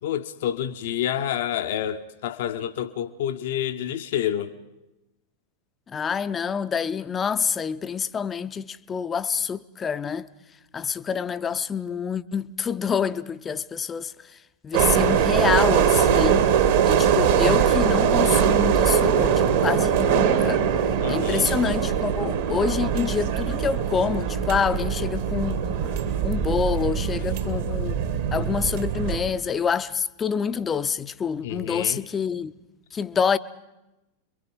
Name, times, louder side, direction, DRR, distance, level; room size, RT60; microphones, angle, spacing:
voice 1, 0.0-4.5 21.0-21.5 31.4-32.1, left 10 dB, 55° left, 0.8 m, -28 dB
voice 2, 5.9-10.3 10.7-14.4 14.6-16.6 16.8-20.6 21.1-26.0 26.2-28.0 28.3-32.5 32.9-33.4, left 6 dB, 20° left, 0.7 m, -27 dB
sound 1, 14.7-29.2, right 8 dB, 55° right, 2.2 m, -22 dB
27.0 x 23.0 x 5.5 m
figure-of-eight pair, 90°, 0 cm